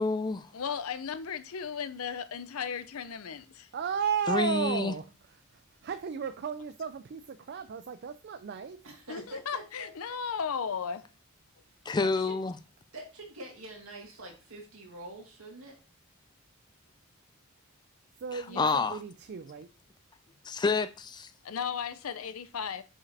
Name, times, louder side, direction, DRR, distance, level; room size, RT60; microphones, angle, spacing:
voice 1, 0.0-0.5 4.3-4.9 11.9-12.5 18.6-19.0 20.5-21.3, left 4 dB, 20° left, 0.3 m, -28 dB
voice 2, 0.5-3.7 9.1-11.0 18.5-18.9 21.4-22.8, left 6 dB, 85° left, 0.6 m, -35 dB
voice 3, 3.7-5.1 5.5-8.8 18.2-19.7, right 7 dB, 50° right, 0.4 m, -34 dB
voice 4, 8.8-9.9 12.0-12.4 12.9-15.8, right 1 dB, 75° right, 1.9 m, -45 dB
5.2 x 5.0 x 4.1 m
head